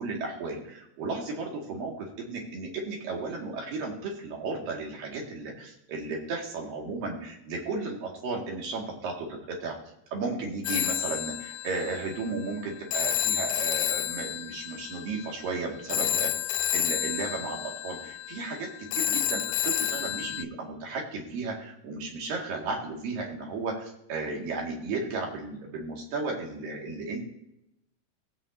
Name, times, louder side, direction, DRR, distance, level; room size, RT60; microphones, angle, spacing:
voice 1, 0.0-9.8 10.1-16.3 16.7-27.2, right 3 dB, 75° right, -1 dB, 3.8 m, -34 dB
Telephone, 10.6-20.4, left 11 dB, 85° left, 1.8 m, -30 dB
19.5 x 7.3 x 2.7 m, 0.83 s
omnidirectional pair, 4.1 m